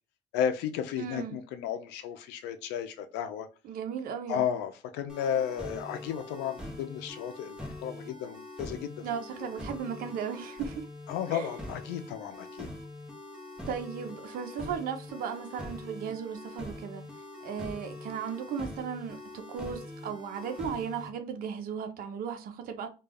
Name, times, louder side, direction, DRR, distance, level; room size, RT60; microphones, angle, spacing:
voice 1, 0.3-3.5 4.3-9.0 9.4-9.5 11.1-12.7, left 9 dB, 90° left, 0.4 m, -33 dB
voice 2, 1.0-1.3 3.6-4.4 9.0-10.9 11.3-11.5 13.7-17.0 17.4-22.9, right 7 dB, 60° right, 0.5 m, -36 dB
sound 1, 5.1-21.1, left 1 dB, 5° right, 0.8 m, -43 dB
2.3 x 2.2 x 3.3 m
cardioid pair, 110°, 17 cm